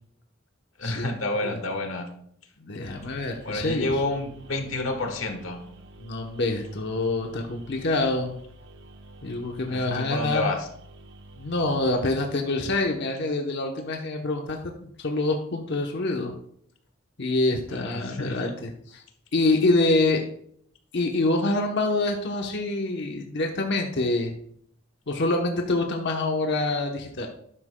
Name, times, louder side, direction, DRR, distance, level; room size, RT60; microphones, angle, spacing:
voice 1, 0.8-2.1 3.1-5.6 9.7-10.7 17.7-18.5, left 2 dB, 90° left, 6 dB, 1.2 m, -30 dB
voice 2, 2.6-3.9 6.0-8.3 9.2-10.5 11.4-16.3 17.2-19.0 19.3-20.2 20.9-24.4 25.1-27.3, left 2 dB, 60° left, 2 dB, 0.9 m, -26 dB
sound 1, 2.9-12.0, right 1 dB, 60° right, 1.0 m, -48 dB
12.0 x 9.9 x 2.2 m, 0.68 s
head